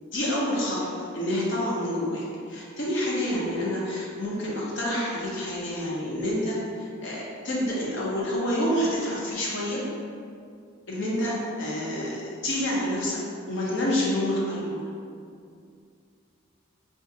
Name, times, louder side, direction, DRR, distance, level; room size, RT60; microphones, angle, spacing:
voice 1, 0.1-9.8 10.9-13.2 13.5-14.9, left 1 dB, 60° left, -5 dB, 0.6 m, -28 dB
2.5 x 2.5 x 3.7 m, 2.3 s
head